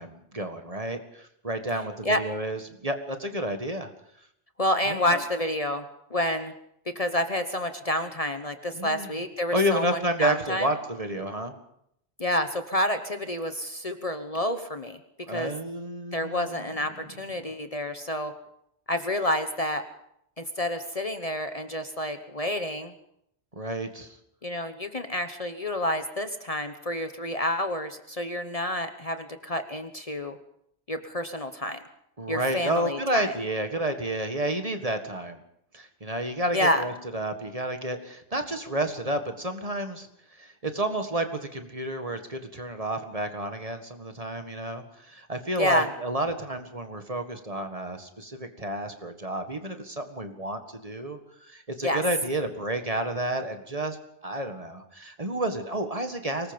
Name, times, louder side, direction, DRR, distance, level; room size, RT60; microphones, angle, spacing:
voice 1, 0.0-3.9 4.9-5.2 8.7-9.1 9.5-11.5 15.3-16.7 23.5-24.2 32.2-35.4 35.7-40.1 40.4-54.0 54.2-56.5, right 1 dB, 35° right, 7 dB, 1.8 m, -30 dB
voice 2, 4.6-5.8 6.1-6.5 6.9-10.7 12.2-15.0 15.3-15.5 16.1-18.3 18.9-19.8 20.4-22.9 24.4-30.4 30.9-31.8 32.3-33.3 36.5-36.8 45.6-45.9 51.8-52.0, left 1 dB, 35° left, 8 dB, 1.2 m, -29 dB
24.0 x 20.0 x 5.3 m, 0.75 s
omnidirectional pair, 1.1 m